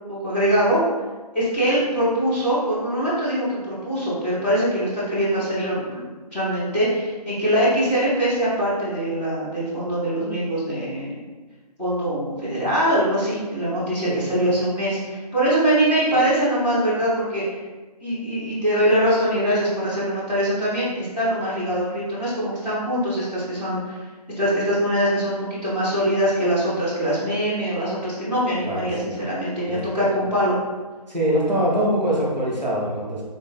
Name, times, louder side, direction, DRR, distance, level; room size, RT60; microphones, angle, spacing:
voice 1, 0.1-0.8 1.3-11.1 11.8-17.4 18.0-24.0 24.4-30.6, equal, 15° left, -13 dB, 1.1 m, -23 dB
voice 2, 14.0-14.4 28.6-29.1 29.7-30.1 31.1-33.2, right 1 dB, ahead, -16 dB, 0.4 m, -24 dB
3.7 x 3.0 x 4.0 m, 1.3 s
figure-of-eight pair, 145°, 21 cm